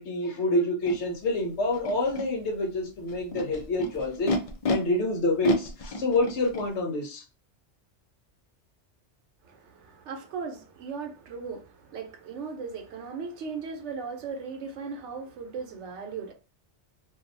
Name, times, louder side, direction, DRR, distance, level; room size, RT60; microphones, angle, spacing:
voice 1, 0.0-4.3 4.7-7.2, left 2 dB, 75° left, 1.1 m, -27 dB
Animal, 0.9-1.0 1.7-2.2 3.1-4.7 5.4-6.7, left 2 dB, 60° left, 0.4 m, -30 dB
voice 2, 9.4-16.3, right 5 dB, 90° right, 1.0 m, -37 dB
2.7 x 2.3 x 2.5 m
omnidirectional pair, 1.2 m